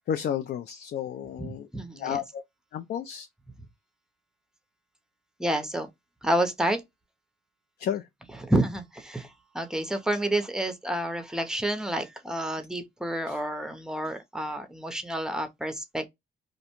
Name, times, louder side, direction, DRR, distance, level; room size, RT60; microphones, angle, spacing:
voice 1, 0.1-1.7 2.0-2.4 2.7-3.3 7.8-8.1 13.3-13.4, left 9 dB, 55° left, 0.4 m, -31 dB
voice 2, 1.4-2.2 5.4-5.9 6.2-6.8 8.4-16.1, right 1 dB, 5° right, 0.6 m, -29 dB
2.5 x 2.1 x 2.9 m
cardioid pair, 90°, 20 cm